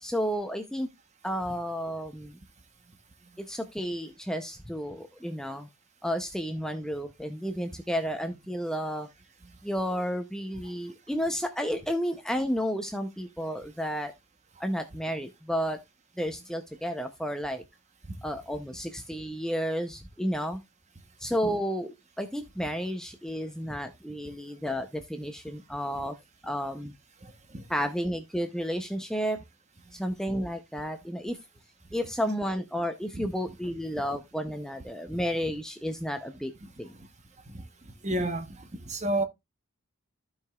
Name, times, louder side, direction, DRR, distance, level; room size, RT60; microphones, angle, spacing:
voice 1, 0.0-0.9 1.2-2.4 3.4-5.7 6.0-9.1 9.6-14.1 14.6-15.8 16.2-17.6 18.2-20.6 21.2-26.1 26.4-26.9 27.7-29.4 29.9-31.4 31.9-36.5 36.8-36.9, equal, 5° left, 0.5 m, -32 dB
voice 2, 38.0-38.5 38.9-39.2, right 1 dB, 30° right, 1.0 m, -29 dB
14.5 x 4.9 x 2.3 m
head